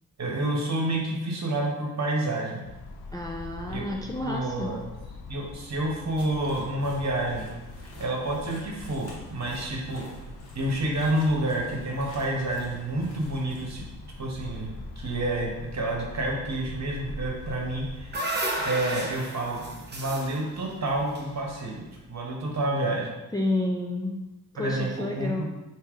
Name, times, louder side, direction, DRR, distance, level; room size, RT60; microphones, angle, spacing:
voice 1, 0.2-2.7 3.7-3.8 4.2-4.8 5.3-7.5 8.0-10.0 10.5-13.8 14.2-18.2 18.6-23.1 24.6-25.4, right 1 dB, 45° right, -1 dB, 1.1 m, -29 dB
sound 1, 2.6-18.2, left 2 dB, 80° left, 0.5 m, -43 dB
voice 2, 3.1-4.7 23.3-24.2 24.5-25.4, left 1 dB, 10° left, 0 dB, 0.4 m, -30 dB
sound 2, 6.1-13.7, left 1 dB, 45° left, 1.3 m, -49 dB
sound 3, 17.6-21.9, right 1 dB, 30° right, 0.8 m, -33 dB
3.4 x 2.7 x 3.6 m, 1.1 s
cardioid pair, 60°, 37 cm